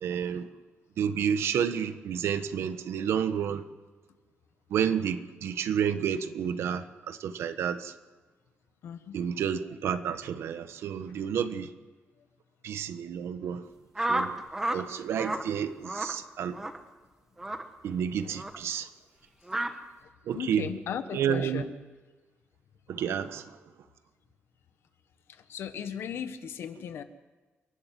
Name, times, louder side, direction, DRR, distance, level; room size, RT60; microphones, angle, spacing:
voice 1, 0.0-0.5 1.0-3.6 4.7-7.9 9.1-11.7 12.6-13.7 14.1-14.3 14.7-16.6 17.8-18.9 20.3-20.6 21.1-21.6 22.9-23.6, right 8 dB, 85° right, 1.3 m, -30 dB
voice 2, 8.8-9.2 18.2-18.3 20.0-21.7 25.3-27.0, left 8 dB, 70° left, 1.4 m, -37 dB
sound 1, 14.0-14.8 15.1-15.4 15.9-16.1 16.5-16.8 17.4-17.6 18.4-18.6 19.5-19.7, right 1 dB, 10° right, 1.2 m, -30 dB
29.0 x 12.0 x 7.7 m
wide cardioid pair, 175°, 4 cm